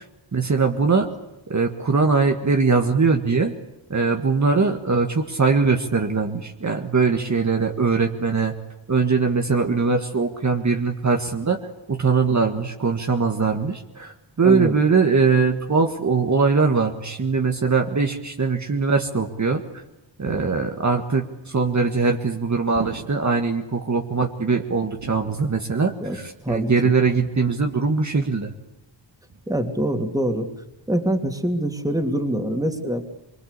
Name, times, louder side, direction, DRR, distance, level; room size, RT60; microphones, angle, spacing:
voice 1, 0.3-1.1 1.5-3.5 3.9-8.5 8.9-11.6 11.9-19.6 20.2-28.5, right 4 dB, 40° right, 3 dB, 1.8 m, -21 dB
voice 2, 14.4-14.7 26.0-26.2 26.4-26.7 29.5-30.5 30.9-33.0, right 1 dB, 10° right, 5 dB, 2.9 m, -24 dB
sound 1, 20.3-21.1 22.7-23.5 25.0-25.7 27.1-27.7 29.3-29.4, right 5 dB, 90° right, 2.8 m, -39 dB
25.0 x 24.5 x 8.4 m, 0.94 s
wide cardioid pair, 140°, 45 cm